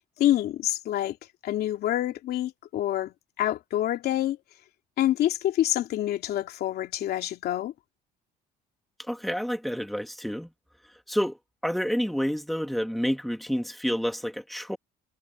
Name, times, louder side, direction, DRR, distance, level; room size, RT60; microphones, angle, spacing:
voice 1, 0.2-1.2 1.4-4.4 5.0-7.7, left 13 dB, 70° left, 2.6 m, -27 dB
voice 2, 9.1-10.5 11.1-11.4 11.6-14.8, equal, ahead, 2.3 m, -29 dB
cardioid pair, 110°, 17 cm